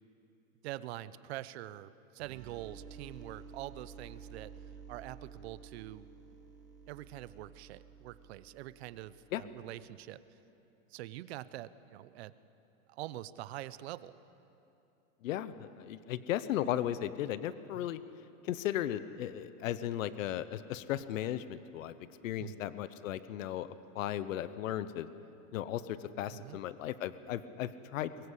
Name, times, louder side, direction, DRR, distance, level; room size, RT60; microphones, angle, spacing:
voice 1, 0.6-4.5 4.9-6.1 6.9-10.2 10.9-12.3 12.9-14.2 17.7-17.9 22.4-22.6 26.3-26.6, right 15 dB, 50° right, 15 dB, 0.8 m, -45 dB
sound 1, 2.2-9.8, right 6 dB, 80° right, 3.7 m, -52 dB
voice 2, 15.2-18.0 18.4-21.9 22.2-25.1 25.5-28.1, left 12 dB, 65° left, 14 dB, 1.1 m, -36 dB
23.0 x 20.5 x 8.3 m, 2.8 s
supercardioid pair, 155°, 42 cm